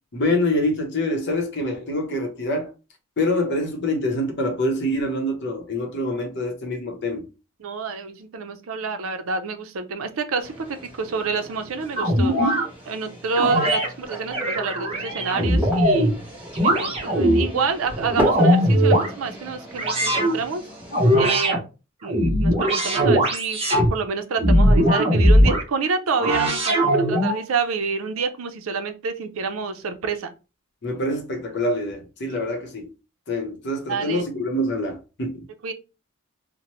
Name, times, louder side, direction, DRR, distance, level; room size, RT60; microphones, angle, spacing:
voice 1, 0.1-2.7 3.2-7.3 30.8-32.9 33.3-35.4, left 1 dB, 55° left, 0.7 m, -25 dB
voice 2, 7.6-12.6 12.9-16.1 16.6-20.6 21.1-21.6 22.0-23.6 23.9-30.3 33.9-34.3 35.6-35.7, right 5 dB, 80° right, 0.5 m, -28 dB
sound 1, 10.4-21.2, equal, 10° right, 1.0 m, -36 dB
sound 2, 12.0-12.6 13.4-13.9 14.3-16.1 16.5-17.4 17.9-19.1 19.8-20.3 20.9-21.6 22.0-23.9 24.4-25.6 26.2-27.4, equal, 30° right, 0.8 m, -19 dB
2.9 x 2.1 x 3.0 m
head